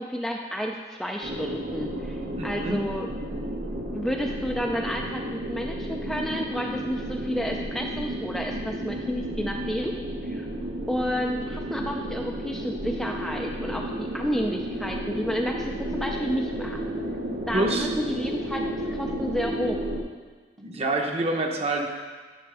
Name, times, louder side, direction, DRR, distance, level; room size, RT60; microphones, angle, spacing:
voice 1, 0.0-3.1 3.9-10.5 10.9-16.8 17.5-19.9, equal, ahead, 1 dB, 0.3 m, -31 dB
sound 1, 1.2-20.0, right 1 dB, 75° right, 0.9 m, -32 dB
voice 2, 2.4-2.8 17.5-17.9 20.6-21.9, right 2 dB, 35° right, 2 dB, 0.8 m, -26 dB
10.0 x 5.9 x 3.4 m, 1.4 s
head